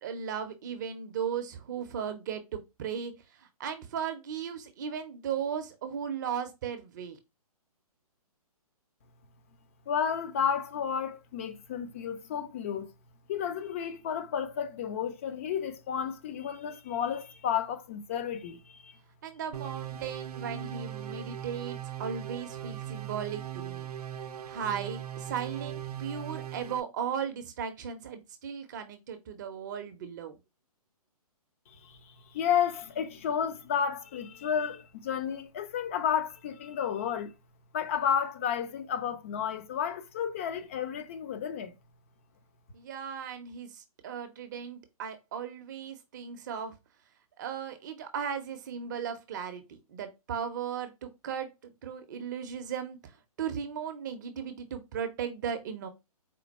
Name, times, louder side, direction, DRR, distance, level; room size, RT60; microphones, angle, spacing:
voice 1, 0.0-7.2 19.2-23.9 24.5-30.3 42.7-46.8 47.4-55.9, right 7 dB, 30° right, 0.6 m, -36 dB
voice 2, 9.9-12.9 13.3-19.0 31.7-37.3 37.7-41.7, left 8 dB, 20° left, 0.4 m, -32 dB
sound 1, 19.5-26.8, right 11 dB, 80° right, 0.5 m, -39 dB
4.3 x 2.2 x 4.0 m
hypercardioid pair, 155°, 19 cm